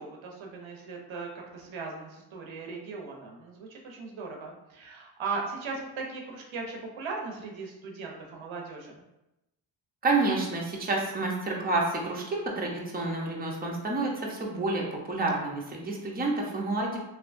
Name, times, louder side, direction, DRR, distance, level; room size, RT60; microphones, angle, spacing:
voice 1, 0.0-9.0, right 4 dB, 70° right, 0 dB, 0.8 m, -38 dB
voice 2, 10.0-17.0, right 2 dB, 20° right, -2 dB, 0.7 m, -29 dB
3.2 x 2.7 x 2.6 m, 0.93 s
cardioid pair, 60°, 49 cm